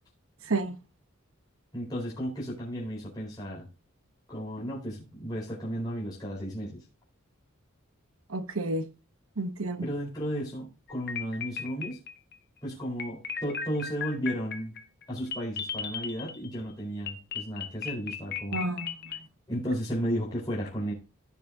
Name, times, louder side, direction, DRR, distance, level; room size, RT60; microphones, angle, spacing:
voice 1, 0.4-0.8 8.3-8.9 9.4-9.9 18.5-19.2, right 2 dB, 80° right, 1.0 m, -31 dB
voice 2, 1.7-3.7 4.3-6.8 9.8-12.0 12.6-14.8 15.1-18.6 19.5-20.9, equal, 20° left, 4.2 m, -34 dB
sound 1, 10.9-12.4 13.0-16.6 17.1-19.2, left 7 dB, 50° left, 1.0 m, -36 dB
15.0 x 6.9 x 2.7 m
head